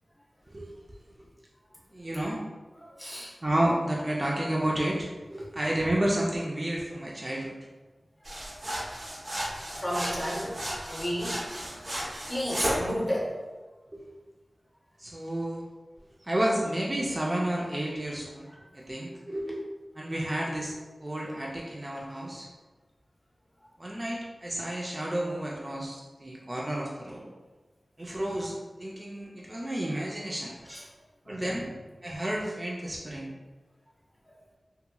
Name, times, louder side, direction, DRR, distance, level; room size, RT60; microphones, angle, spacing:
voice 1, 1.9-2.4 3.4-7.5 13.9-14.1 15.0-15.7 16.2-18.5 18.7-19.6 20.0-22.5 23.8-27.2 28.0-30.5 31.3-31.7 32.0-33.3, right 1 dB, 30° right, -3 dB, 0.4 m, -31 dB
voice 2, 2.8-3.3 9.7-10.6 10.9-13.3 30.7-30.8 31.2-31.5, equal, 10° left, -5 dB, 0.7 m, -33 dB
sound 1, 8.2-12.9, equal, 60° right, 0.7 m, -34 dB
2.8 x 2.6 x 2.2 m, 1.3 s
wide cardioid pair, 65°, 0 cm